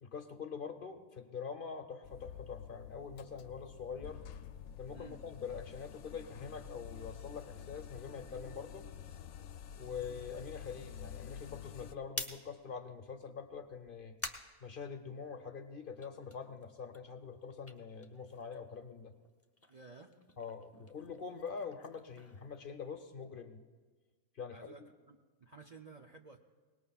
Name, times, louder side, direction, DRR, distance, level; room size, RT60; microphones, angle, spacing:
voice 1, 0.0-4.2 4.8-8.9 9.8-14.1 14.6-19.1 20.4-23.6 24.3-24.7, left 6 dB, 50° left, 7 dB, 0.9 m, -44 dB
sound 1, 2.0-11.9, left 8 dB, 80° left, 1.0 m, -49 dB
sound 2, 12.1-15.5 15.9-18.8 19.1-23.2, left 2 dB, 15° left, 0.6 m, -49 dB
voice 2, 19.7-20.1 24.5-24.8 25.1-26.4, right 4 dB, 40° right, 2 dB, 0.6 m, -54 dB
23.5 x 19.5 x 2.4 m, 1.4 s
omnidirectional pair, 1.3 m